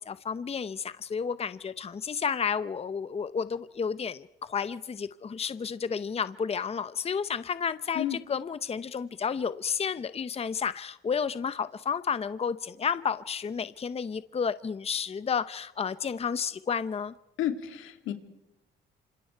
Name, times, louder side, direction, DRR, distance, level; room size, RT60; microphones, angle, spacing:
voice 1, 0.1-17.1, left 6 dB, 30° left, 14 dB, 0.8 m, -31 dB
voice 2, 17.4-18.1, left 11 dB, 90° left, 7 dB, 2.5 m, -31 dB
27.0 x 26.5 x 4.6 m, 0.91 s
cardioid pair, 90°, 20 cm